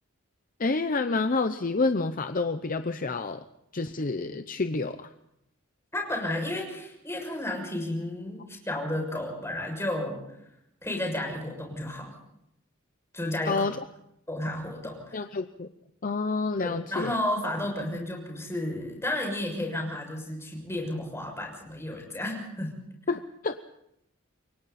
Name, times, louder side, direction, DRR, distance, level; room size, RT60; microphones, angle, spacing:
voice 1, 0.6-3.4 3.7-5.1 13.5-13.8 15.1-15.7 16.0-17.2 23.1-23.6, left 3 dB, 40° left, 9 dB, 0.7 m, -28 dB
voice 2, 5.9-10.2 10.8-12.1 13.1-13.6 14.3-15.2 16.6-22.7, left 1 dB, 10° left, 1 dB, 6.6 m, -32 dB
29.0 x 23.5 x 4.2 m, 0.80 s
head